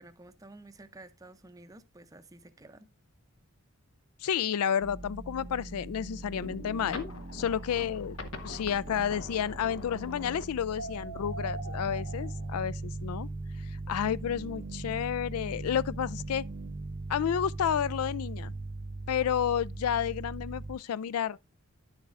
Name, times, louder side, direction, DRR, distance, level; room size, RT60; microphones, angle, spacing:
voice 1, 0.0-2.9, right 2 dB, 15° right, 0.5 m, -51 dB
voice 2, 4.2-7.1 7.3-8.2 8.4-13.3 13.9-16.4 17.1-18.5 19.1-21.4, left 8 dB, 85° left, 0.3 m, -31 dB
sound 1, 4.8-20.8, right 2 dB, 55° right, 0.8 m, -40 dB
sound 2, 6.3-12.5, left 1 dB, 65° left, 0.9 m, -43 dB
10.5 x 7.2 x 2.4 m
head